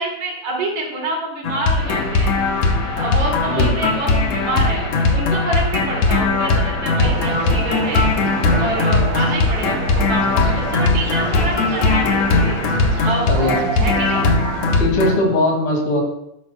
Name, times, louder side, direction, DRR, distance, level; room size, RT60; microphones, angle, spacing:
voice 1, 0.0-2.3 2.9-8.1 8.6-12.6 13.0-13.3 13.7-14.3, right 1 dB, 70° right, -2 dB, 3.9 m, -27 dB
sound 1, 1.4-15.1, left 3 dB, 65° left, 2.1 m, -19 dB
sound 2, 1.8-13.1, left 1 dB, 45° left, 4.1 m, -32 dB
voice 2, 3.5-3.9 13.3-13.7 14.8-16.0, left 1 dB, 80° left, 0 dB, 3.9 m, -19 dB
sound 3, 7.0-14.8, right 7 dB, 90° right, 1.2 m, -30 dB
12.5 x 11.0 x 2.3 m, 0.80 s
omnidirectional pair, 3.4 m